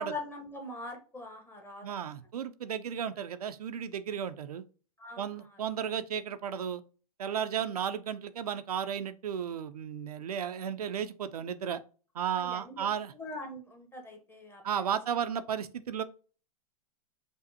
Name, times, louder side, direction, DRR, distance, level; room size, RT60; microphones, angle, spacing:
voice 1, 0.0-2.0 5.0-5.5 12.3-12.9 13.1-14.8, left 1 dB, 10° left, 0.8 m, -42 dB
voice 2, 1.8-4.6 5.2-6.8 7.2-11.8 12.1-13.1 14.6-16.0, right 8 dB, 85° right, 0.4 m, -34 dB
5.1 x 2.1 x 2.7 m
hypercardioid pair, 115°, 19 cm